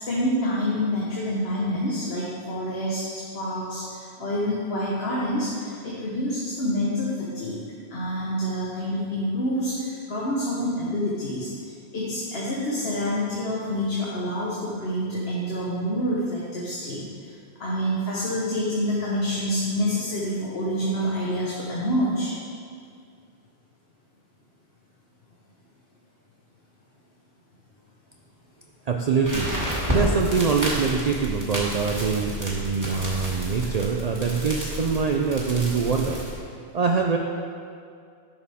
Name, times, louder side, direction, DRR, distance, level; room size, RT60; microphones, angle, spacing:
voice 1, 0.1-7.6 7.9-11.5 11.9-17.0 17.6-22.3, equal, 75° left, -6 dB, 1.5 m, -27 dB
voice 2, 28.9-29.5 29.9-36.2 36.7-37.2, right 5 dB, 50° right, 1 dB, 0.5 m, -24 dB
sound 1, 29.2-36.4, equal, 15° right, 2.3 m, -30 dB
11.0 x 7.0 x 3.6 m, 2.3 s
omnidirectional pair, 1.0 m